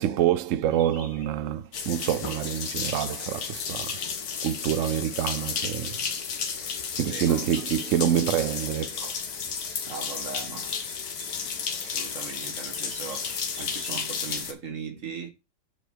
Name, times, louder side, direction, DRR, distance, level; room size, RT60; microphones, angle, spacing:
voice 1, 0.0-4.0 4.4-6.0 6.6-9.2 11.8-12.0, right 11 dB, 70° right, 0.7 m, -27 dB
sound 1, 0.7-14.4, equal, 30° left, 2.2 m, -53 dB
sound 2, 1.7-14.5, left 6 dB, 65° left, 1.5 m, -33 dB
voice 2, 7.1-7.5 9.9-10.8 11.8-15.3, right 5 dB, 50° right, 1.7 m, -39 dB
7.0 x 4.8 x 4.6 m
omnidirectional pair, 1.8 m